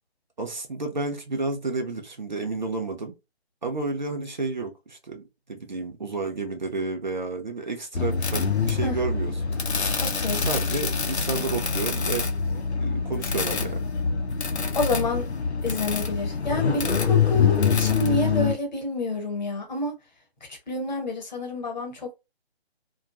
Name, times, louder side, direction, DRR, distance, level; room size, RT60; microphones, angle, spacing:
voice 1, 0.4-3.1 3.6-9.7 10.4-12.3 12.8-13.8, right 3 dB, 45° right, 0.5 m, -31 dB
sound 1, 7.9-18.5, left 6 dB, 80° left, 0.6 m, -25 dB
voice 2, 10.0-10.4 14.7-15.2 15.6-19.9 20.5-22.1, left 2 dB, 45° left, 1.0 m, -28 dB
2.4 x 2.3 x 2.4 m
figure-of-eight pair, 150°, 32 cm